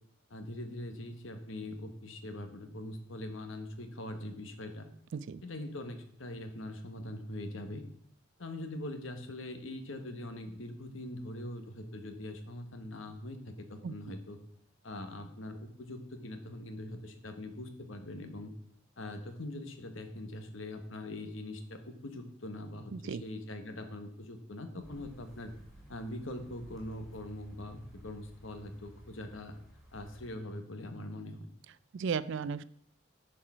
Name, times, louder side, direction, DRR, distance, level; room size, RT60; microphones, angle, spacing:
voice 1, 0.3-4.9 5.4-7.8 8.4-14.4 14.8-18.5 19.0-25.5 25.9-29.5 29.9-31.5, left 1 dB, 70° left, 7 dB, 1.3 m, -42 dB
voice 2, 22.9-23.2 31.9-32.6, right 6 dB, 65° right, 17 dB, 0.4 m, -35 dB
sound 1, 24.8-30.3, equal, ahead, 2.8 m, -54 dB
10.0 x 4.7 x 6.0 m, 0.65 s
head